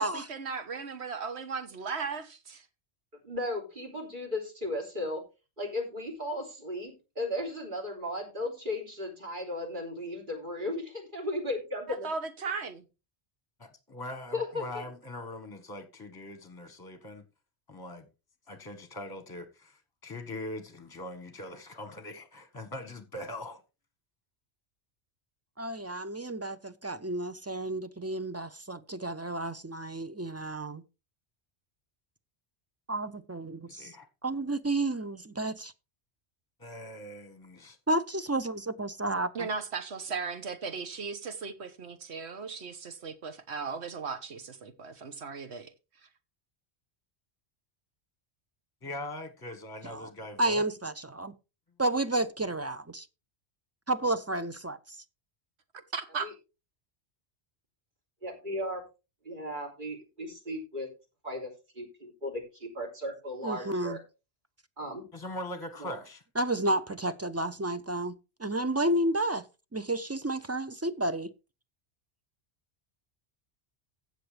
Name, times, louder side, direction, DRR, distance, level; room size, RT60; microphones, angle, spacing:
voice 1, 0.0-2.7 11.9-12.9 39.3-45.7 55.9-56.3, right 5 dB, 75° right, 1.5 m, -37 dB
voice 2, 3.2-5.2 5.6-12.1 14.3-14.9 56.2-56.3 58.2-58.8 59.2-60.9 61.2-61.5 61.8-64.0 64.8-65.1 65.8-65.9, left 1 dB, 45° right, 3.5 m, -35 dB
voice 3, 13.6-17.2 17.7-18.1 18.5-23.6 33.7-34.1 36.6-37.8 48.8-50.6 65.1-66.2, left 1 dB, 20° left, 1.3 m, -41 dB
voice 4, 25.6-30.8 32.9-33.9 34.2-35.7 37.9-39.5 49.8-50.1 50.4-51.3 51.8-53.1 53.9-54.8 63.4-64.0 66.4-68.1 68.4-69.4 69.7-71.3, right 1 dB, 25° right, 0.3 m, -31 dB
16.0 x 6.5 x 3.3 m
omnidirectional pair, 1.1 m